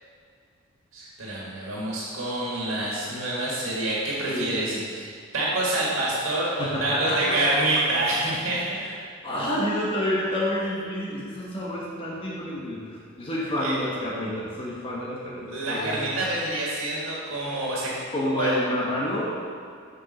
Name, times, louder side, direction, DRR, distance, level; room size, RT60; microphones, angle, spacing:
voice 1, 0.9-5.1 5.3-8.6 13.6-13.8 15.5-17.9 18.4-18.5, right 2 dB, 85° right, -5 dB, 1.8 m, -27 dB
voice 2, 4.3-4.8 6.6-7.4 8.7-9.0 9.2-16.1 18.1-19.4, left 1 dB, 25° left, -6 dB, 1.2 m, -29 dB
7.2 x 5.2 x 6.3 m, 2.2 s
head